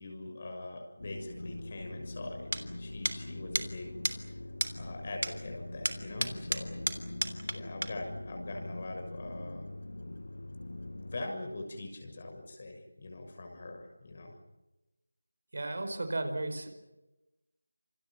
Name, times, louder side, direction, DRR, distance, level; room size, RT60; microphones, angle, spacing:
voice 1, 0.0-2.5 2.8-3.9 4.7-6.8 7.5-9.6 10.8-14.4, left 2 dB, 30° left, 3 dB, 6.6 m, -42 dB
sound 1, 1.0-11.3, left 1 dB, 55° left, 1.9 m, -43 dB
sound 2, 2.5-2.6 3.0-3.2 3.5-3.7 4.0-4.2 4.6-4.7 5.2-5.3 5.8-7.6 7.8-7.9, right 1 dB, 65° right, 3.3 m, -31 dB
voice 2, 15.5-16.7, right 2 dB, 45° right, 7 dB, 5.1 m, -34 dB
30.0 x 28.0 x 5.9 m, 1.0 s
figure-of-eight pair, 165°, 0 cm